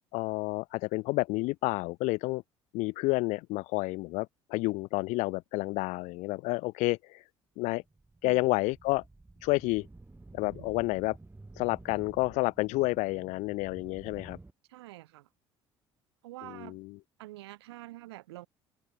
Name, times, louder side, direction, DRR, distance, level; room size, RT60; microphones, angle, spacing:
voice 1, 0.1-2.4 2.7-7.2 7.6-7.8 8.2-9.0 9.4-9.9 10.3-11.2 11.6-14.4 16.4-17.0, left 22 dB, 60° left, 0.9 m, -30 dB
sound 1, 7.7-14.5, right 2 dB, 15° right, 2.1 m, -52 dB
voice 2, 14.7-15.3 16.2-16.8 17.2-18.5, right 17 dB, 75° right, 2.2 m, -46 dB
figure-of-eight pair, 55°, 14 cm